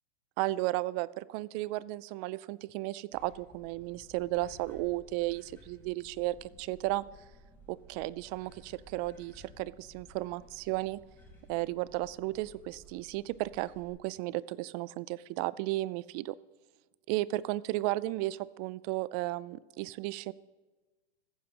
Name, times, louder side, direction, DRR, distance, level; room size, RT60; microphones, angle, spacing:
voice 1, 0.4-7.0 7.7-11.0 11.5-16.4 17.1-20.3, right 18 dB, 40° right, 20 dB, 0.4 m, -34 dB
sound 1, 3.1-13.9, equal, 5° left, 4.5 m, -56 dB
15.0 x 14.5 x 2.9 m, 1.2 s
supercardioid pair, 130°, 33 cm